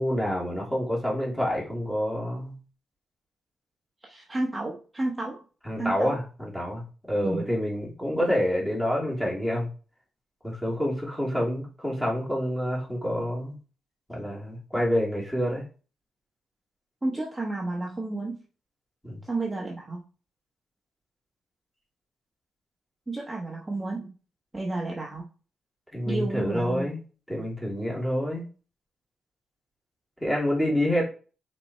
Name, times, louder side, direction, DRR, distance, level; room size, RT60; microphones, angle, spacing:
voice 1, 0.0-2.6 5.6-9.7 10.4-13.5 14.1-15.7 19.0-19.2 25.9-27.0 27.3-28.4 30.2-31.0, equal, 5° left, -4 dB, 3.0 m, -27 dB
voice 2, 4.0-5.4 5.8-6.2 7.2-7.4 17.0-18.4 19.2-20.1 23.1-24.1 24.5-25.3 26.0-26.9, right 2 dB, 15° right, -2 dB, 1.2 m, -31 dB
5.3 x 4.3 x 4.4 m, 0.36 s
cardioid pair, 125°, 0 cm